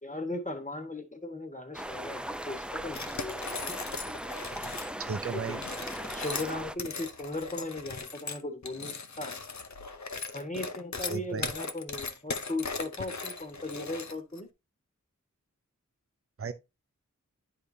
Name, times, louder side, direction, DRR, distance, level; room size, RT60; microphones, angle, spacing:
voice 1, 0.0-3.4 5.5-5.6 6.1-9.3 10.3-14.5, left 2 dB, 25° left, 1.5 m, -37 dB
sound 1, 1.7-6.8, right 1 dB, 5° right, 0.5 m, -38 dB
sound 2, 2.9-4.9 5.5-14.4, left 4 dB, 60° left, 0.7 m, -38 dB
voice 2, 5.0-5.6 11.1-11.5 16.4-16.5, right 5 dB, 45° right, 0.6 m, -34 dB
10.0 x 4.9 x 2.7 m
wide cardioid pair, 50°, 31 cm